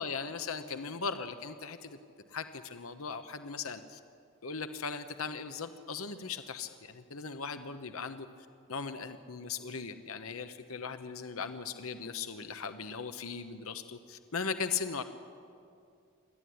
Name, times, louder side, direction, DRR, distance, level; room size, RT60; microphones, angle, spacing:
voice 1, 0.0-2.0 2.3-4.0 4.4-8.3 8.7-15.0, left 5 dB, 75° left, 9 dB, 1.0 m, -38 dB
28.0 x 12.5 x 9.5 m, 2.4 s
head